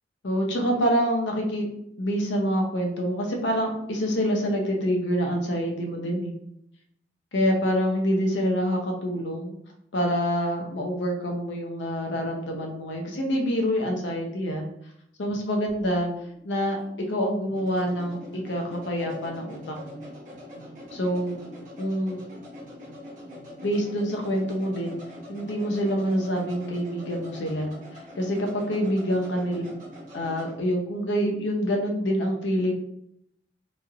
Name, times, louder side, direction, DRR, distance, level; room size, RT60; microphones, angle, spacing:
voice 1, 0.2-1.7 2.0-6.3 7.3-9.6 9.9-14.6 15.2-16.1 16.4-16.8 17.1-20.0 20.9-21.4 21.8-22.2 23.6-25.0 25.3-27.7 28.1-29.7 30.1-32.7, equal, 75° left, 1 dB, 0.7 m, -26 dB
sound 1, 15.3-30.6, left 1 dB, 45° right, 0.8 m, -44 dB
3.1 x 2.4 x 2.9 m, 0.75 s
head